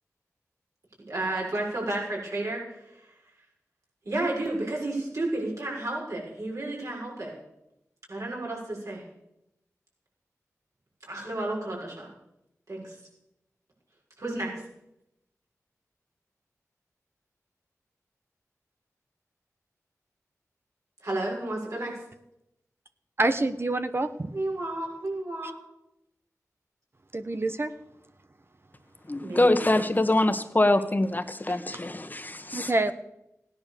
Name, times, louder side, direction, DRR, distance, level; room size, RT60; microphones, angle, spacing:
voice 1, 1.1-2.6 2.9-3.0 4.0-7.3 8.1-9.0 11.1-12.1 12.7-13.0 14.2-14.5 21.0-22.0 24.3-25.5 29.2-29.7, right 2 dB, 65° right, -2 dB, 6.7 m, -31 dB
voice 2, 23.2-24.3 27.1-27.7 31.5-31.6 32.5-32.9, right 2 dB, 45° right, 9 dB, 1.2 m, -26 dB
voice 3, 29.1-32.7, left 2 dB, 30° left, 9 dB, 1.6 m, -24 dB
16.0 x 10.5 x 7.0 m, 0.84 s
cardioid pair, 45°, 6 cm